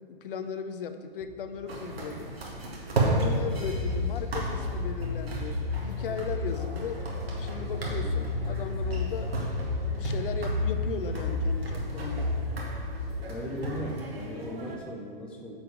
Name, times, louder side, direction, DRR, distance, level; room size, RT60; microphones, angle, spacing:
voice 1, 0.1-2.3 3.1-7.0 7.4-9.3 9.9-12.3, left 6 dB, 65° left, 9 dB, 0.7 m, -37 dB
sound 1, 1.2-13.7, equal, 20° right, 1.1 m, -47 dB
sound 2, 1.7-14.8, right 2 dB, 90° right, 1.9 m, -34 dB
sound 3, 3.4-13.0, left 3 dB, 45° right, 1.5 m, -32 dB
voice 2, 13.3-15.6, equal, 5° left, 0 dB, 0.4 m, -37 dB
9.0 x 5.0 x 5.0 m, 2.2 s
hypercardioid pair, 135°, 29 cm